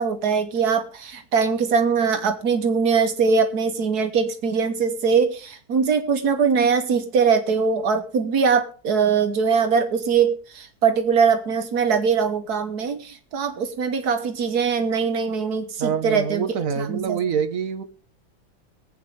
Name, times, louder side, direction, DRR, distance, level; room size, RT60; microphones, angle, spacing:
voice 1, 0.0-16.5 16.8-17.2, right 5 dB, 90° right, 7 dB, 1.9 m, -22 dB
voice 2, 15.8-17.8, right 7 dB, 60° right, 10 dB, 1.6 m, -25 dB
23.5 x 8.5 x 3.4 m, 0.38 s
omnidirectional pair, 1.6 m